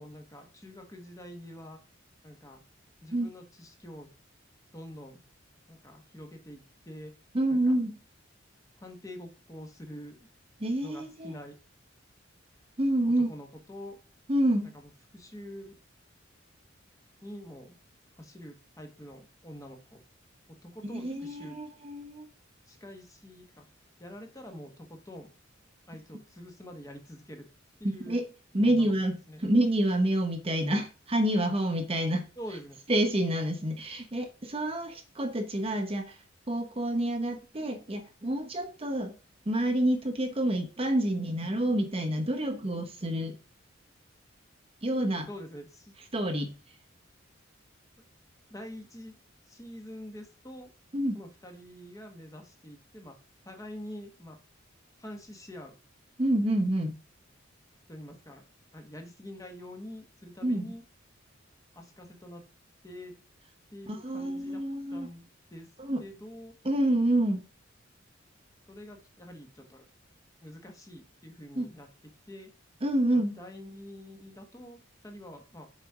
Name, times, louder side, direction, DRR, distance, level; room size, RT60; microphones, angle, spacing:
voice 1, 0.0-1.8 2.2-2.6 3.0-4.1 4.7-5.2 5.7-7.1 7.5-7.8 8.7-10.2 10.8-11.6 13.0-14.0 14.6-15.8 17.2-17.8 18.2-20.0 20.6-21.6 22.7-23.7 24.0-25.3 25.9-27.4 27.8-28.2 28.6-28.9 29.3-29.4 32.4-32.8 45.3-45.9 48.0-48.1 48.5-49.2 49.5-50.7 51.1-53.2 53.4-54.4 55.0-55.7 57.9-58.4 58.7-60.8 61.7-62.4 62.8-63.1 63.7-64.6 64.9-65.2 65.5-65.7 66.0-66.5 68.7-69.8 70.4-71.9 72.3-72.5 73.4-75.7, left 1 dB, 15° left, 3 dB, 1.2 m, -46 dB
voice 2, 7.3-7.9 10.6-11.3 12.8-13.3 14.3-14.7 20.9-22.3 27.8-28.3 28.5-32.2 32.9-36.2 36.5-39.1 39.5-43.3 44.8-45.3 46.1-46.5 50.9-51.2 56.2-57.0 60.4-60.7 63.9-65.1 65.8-66.0 66.6-67.4 71.5-71.7 72.8-73.3, right 1 dB, 30° right, 6 dB, 0.9 m, -28 dB
7.0 x 4.2 x 4.8 m, 0.34 s
head